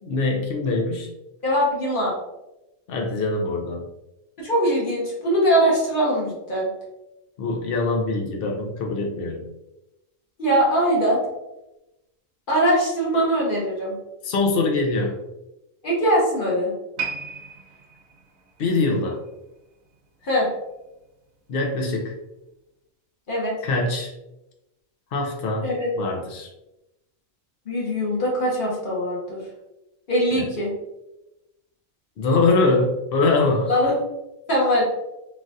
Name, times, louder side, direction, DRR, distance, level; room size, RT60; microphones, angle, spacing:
voice 1, 0.0-1.1 2.9-3.9 7.4-9.4 14.2-15.2 18.6-19.2 21.5-22.1 23.6-24.1 25.1-25.7 26.0-26.5 30.3-30.5 32.2-33.7, left 3 dB, 60° left, 1 dB, 0.6 m, -23 dB
voice 2, 1.4-2.1 4.4-6.7 10.4-11.2 12.5-13.9 15.8-16.7 20.2-20.5 23.3-23.5 25.6-25.9 27.7-29.4 30.1-30.7 33.7-33.9 34.5-34.8, equal, 45° left, -5 dB, 1.0 m, -21 dB
sound 1, 17.0-20.3 20.6-20.8 21.5-21.6, right 5 dB, 80° right, 1.0 m, -36 dB
3.2 x 2.4 x 2.6 m, 0.95 s
omnidirectional pair, 1.4 m